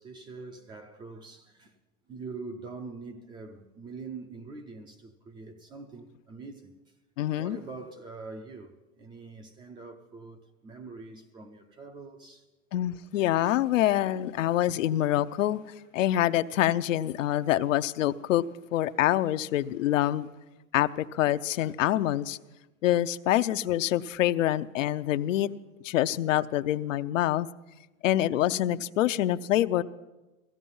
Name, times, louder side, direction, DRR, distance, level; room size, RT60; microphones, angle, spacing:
voice 1, 0.0-1.7 2.1-6.8 7.4-12.5 15.9-16.2, right 4 dB, 10° right, 0.4 m, -44 dB
voice 2, 7.2-7.6 12.7-15.6 15.9-18.5 18.7-20.3 20.7-22.4 22.8-25.5 25.8-27.5 28.0-29.8, left 13 dB, 70° left, 0.7 m, -26 dB
16.5 x 15.5 x 5.4 m
hypercardioid pair, 145°, 40 cm